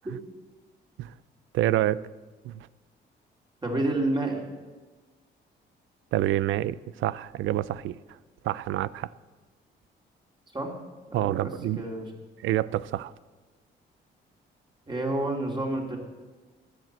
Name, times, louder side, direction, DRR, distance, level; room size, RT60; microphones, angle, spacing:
voice 1, 1.5-2.0 2.4-2.7 6.1-7.9 8.4-9.1 11.1-11.9 12.4-13.1, right 14 dB, 80° right, 19 dB, 0.5 m, -27 dB
voice 2, 3.6-4.4 10.5-10.7 11.1-12.1 14.9-16.0, right 2 dB, 20° right, 1 dB, 3.2 m, -29 dB
13.5 x 9.4 x 7.6 m, 1.3 s
cardioid pair, 90°, 20 cm